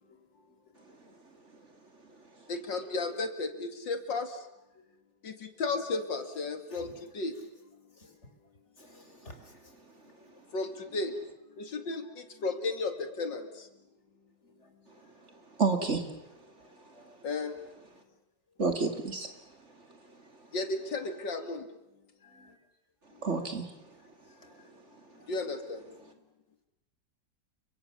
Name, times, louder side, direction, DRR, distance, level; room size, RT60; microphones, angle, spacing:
voice 1, 2.5-4.5 5.2-7.3 10.5-11.2 11.6-13.7 17.2-17.5 20.5-21.7 25.3-25.9, left 3 dB, 85° left, 8 dB, 3.0 m, -34 dB
voice 2, 6.7-7.0 8.0-8.1 8.8-9.6 14.4-14.7 16.6-17.2 22.2-22.6 24.3-24.7 25.1-25.3, left 1 dB, 40° left, 7 dB, 4.1 m, -55 dB
voice 3, 15.6-16.1 18.6-19.3 23.2-23.7, right 4 dB, 40° right, 7 dB, 2.8 m, -29 dB
30.0 x 25.0 x 7.1 m, 0.91 s
omnidirectional pair, 1.9 m